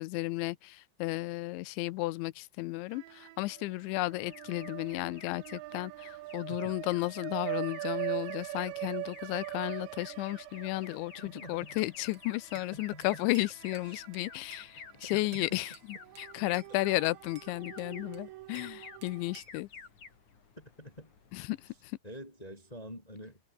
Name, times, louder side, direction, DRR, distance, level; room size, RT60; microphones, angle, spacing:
voice 1, 0.0-19.7 21.3-21.6, left 20 dB, 85° left, 2.9 m, -34 dB
sound 1, 2.9-3.7 4.0-14.4 14.8-14.9 16.0-19.4, right 18 dB, 80° right, 2.9 m, -42 dB
Alarm, 4.3-21.9, left 5 dB, 40° left, 5.2 m, -52 dB
voice 2, 11.2-11.8 12.5-13.2 13.9-14.0 14.3-14.4 14.9-15.6 20.6-21.1 22.0-23.4, equal, 10° left, 2.4 m, -47 dB
Bell / Glass, 11.8-12.7 13.0-14.7 15.0-15.9 16.1-16.7 17.0-18.7 19.0-19.6, right 7 dB, 50° right, 1.5 m, -56 dB
omnidirectional pair, 5.5 m